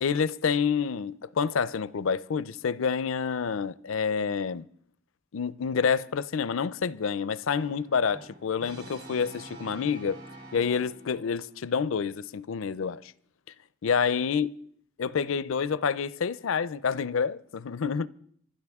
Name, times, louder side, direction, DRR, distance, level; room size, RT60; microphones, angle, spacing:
voice 1, 0.0-4.7 5.3-10.2 10.5-13.1 13.8-14.5 15.0-18.1, left 6 dB, 75° left, 0.5 m, -28 dB
Brass instrument, 7.5-11.4, right 1 dB, 50° right, 2.8 m, -46 dB
25.5 x 12.5 x 3.6 m
head